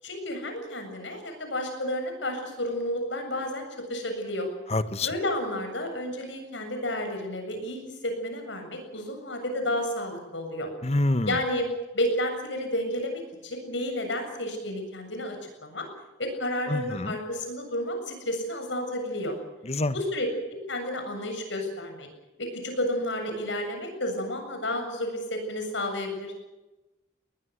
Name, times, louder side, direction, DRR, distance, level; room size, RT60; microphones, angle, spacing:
voice 1, 0.0-4.5 5.0-10.7 11.3-11.7 11.9-15.9 16.2-19.3 19.9-20.3 20.7-22.1 22.4-26.3, left 1 dB, 80° left, 5 dB, 7.5 m, -31 dB
voice 2, 4.7-5.1 10.8-11.4 16.7-17.2 19.6-19.9, left 2 dB, 35° left, 12 dB, 1.2 m, -26 dB
21.5 x 20.0 x 8.1 m, 1.1 s
head